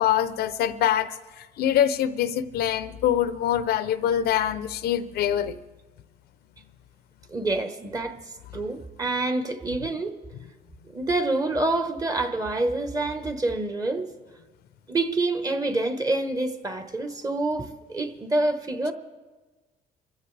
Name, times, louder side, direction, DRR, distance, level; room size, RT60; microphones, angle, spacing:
voice 1, 0.0-5.6, left 10 dB, 70° left, 13 dB, 0.7 m, -24 dB
voice 2, 7.3-8.1 8.5-10.1 10.9-14.1 14.9-18.9, right 2 dB, 20° right, 7 dB, 1.3 m, -27 dB
28.0 x 15.5 x 3.4 m, 1.3 s
cardioid pair, 110°, 17 cm